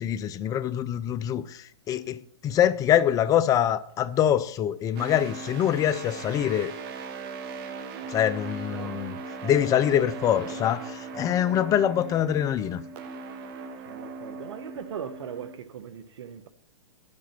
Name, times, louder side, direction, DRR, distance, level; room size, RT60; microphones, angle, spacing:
voice 1, 0.0-6.7 8.1-9.2 9.4-12.8, left 10 dB, 25° left, 0.5 m, -24 dB
sound 1, 5.0-15.5, right 4 dB, 45° right, 1.4 m, -39 dB
voice 2, 8.7-9.1 9.4-10.6 11.4-11.9 13.8-16.5, right 7 dB, 70° right, 1.2 m, -40 dB
11.5 x 7.5 x 5.9 m
hypercardioid pair, 130°, 15 cm